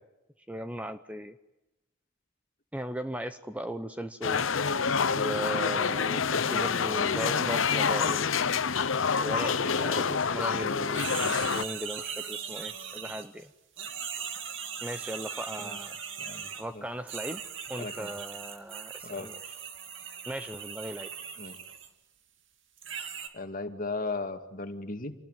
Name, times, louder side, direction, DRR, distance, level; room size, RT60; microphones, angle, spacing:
voice 1, 0.5-1.3 2.7-4.4 5.1-8.4 8.7-8.9 9.2-13.5 14.8-16.0 16.6-17.4 17.7-19.6 20.3-21.1, equal, 5° right, 9 dB, 0.9 m, -37 dB
sound 1, 4.2-11.6, left 6 dB, 75° left, 0.9 m, -27 dB
voice 2, 6.3-7.1 15.6-15.8 16.2-16.8 17.8-18.1 19.0-19.3 21.4-21.5 23.3-25.2, left 3 dB, 45° left, 6 dB, 2.4 m, -37 dB
sound 2, 10.9-13.4 13.8-16.6 17.1-21.9 22.8-23.3, right 7 dB, 65° right, 2.7 m, -39 dB
28.5 x 20.0 x 9.3 m, 1.0 s
head